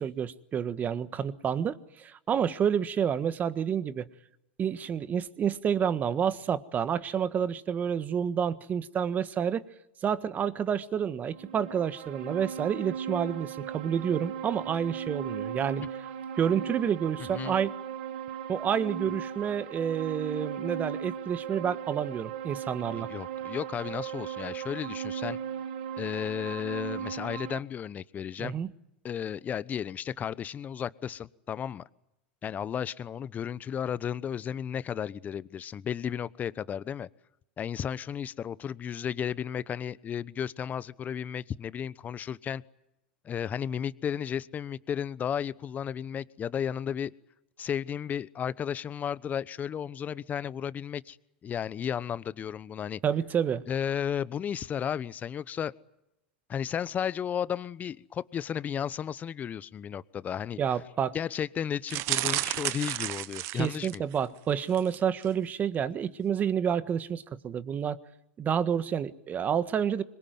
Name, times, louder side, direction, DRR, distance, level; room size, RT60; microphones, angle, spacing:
voice 1, 0.0-4.0 4.6-9.6 10.0-15.8 16.4-17.7 18.5-23.1 28.4-28.7 53.0-53.6 60.6-61.2 63.5-68.0 68.4-70.0, right 8 dB, 30° right, 14 dB, 1.5 m, -29 dB
sound 1, 11.3-27.6, right 8 dB, 70° right, 2.1 m, -37 dB
voice 2, 22.9-25.4 26.0-28.5 29.0-31.8 32.4-37.1 37.6-42.6 43.2-47.1 47.6-51.2 51.4-53.0 53.7-55.7 56.5-60.6 61.1-64.0, left 8 dB, 30° left, 18 dB, 1.0 m, -33 dB
sound 2, 61.9-64.2 64.7-65.0 65.2-65.3, right 17 dB, 50° right, 1.0 m, -32 dB
26.0 x 22.5 x 9.4 m, 0.85 s
hypercardioid pair, 105°, 6 cm